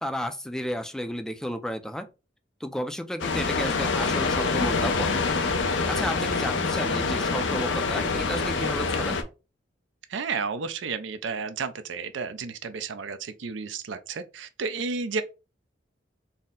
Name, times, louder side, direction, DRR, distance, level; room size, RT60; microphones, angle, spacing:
voice 1, 0.0-2.1 2.6-5.2 5.9-9.2, equal, 5° left, 0.4 m, -32 dB
sound 1, 3.2-9.2, left 4 dB, 90° left, 0.6 m, -26 dB
voice 2, 10.1-15.2, right 5 dB, 90° right, 0.5 m, -32 dB
4.1 x 2.1 x 3.6 m
head